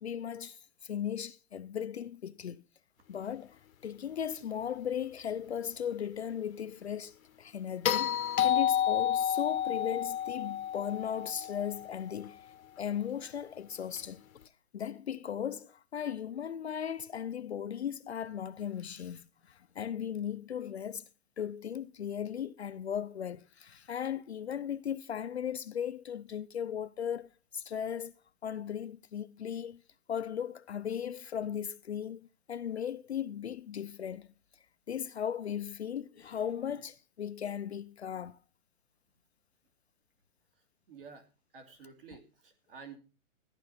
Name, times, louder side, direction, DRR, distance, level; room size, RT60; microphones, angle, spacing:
voice 1, 0.0-2.7 3.1-8.2 8.4-12.5 12.8-14.2 14.7-21.0 21.4-28.1 28.4-29.8 30.1-34.3 34.9-38.4, left 9 dB, 50° left, 0.6 m, -37 dB
sound 1, 7.8-12.1 14.4-14.5, left 10 dB, 75° left, 1.0 m, -30 dB
voice 2, 40.9-41.3 41.5-43.0, right 5 dB, 40° right, 2.8 m, -50 dB
14.0 x 10.5 x 4.2 m
hypercardioid pair, 180°, 41 cm